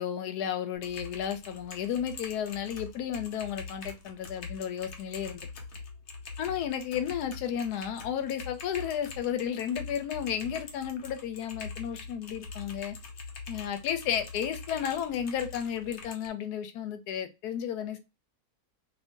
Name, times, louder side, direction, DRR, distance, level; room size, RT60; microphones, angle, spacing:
voice 1, 0.0-5.5 6.4-13.0 13.5-18.0, left 9 dB, 85° left, 1.1 m, -33 dB
Typing, 0.8-16.3, left 4 dB, 55° left, 0.9 m, -44 dB
2.7 x 2.6 x 3.5 m
omnidirectional pair, 1.6 m